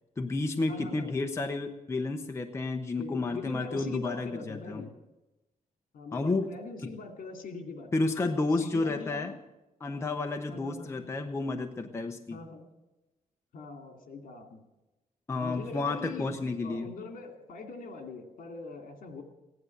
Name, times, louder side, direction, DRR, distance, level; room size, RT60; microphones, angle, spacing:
voice 1, 0.2-4.8 6.1-6.5 7.9-9.3 9.8-12.4 15.3-16.9, left 3 dB, 20° left, 4 dB, 0.8 m, -31 dB
voice 2, 0.7-1.2 3.0-4.9 5.9-7.9 8.4-9.4 10.5-11.0 12.3-12.7 13.5-14.6 15.4-16.4 16.6-19.2, left 3 dB, 65° left, 5 dB, 2.5 m, -42 dB
16.0 x 10.5 x 7.8 m, 1.0 s
wide cardioid pair, 175°, 15 cm